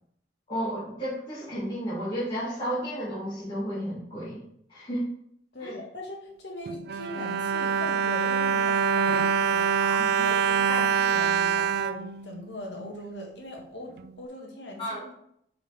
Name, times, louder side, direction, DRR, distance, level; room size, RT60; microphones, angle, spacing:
voice 1, 0.5-4.4 4.7-5.1 5.6-5.7 9.8-10.3 10.7-10.8 14.8-15.0, equal, 30° left, -10 dB, 2.2 m, -32 dB
voice 2, 5.5-9.7 10.1-15.1, left 1 dB, 75° left, 0 dB, 1.7 m, -40 dB
Bowed string instrument, 6.7-12.9 13.6-13.7 14.0-14.1, right 7 dB, 60° right, 0.3 m, -25 dB
7.3 x 4.9 x 3.4 m, 0.70 s
head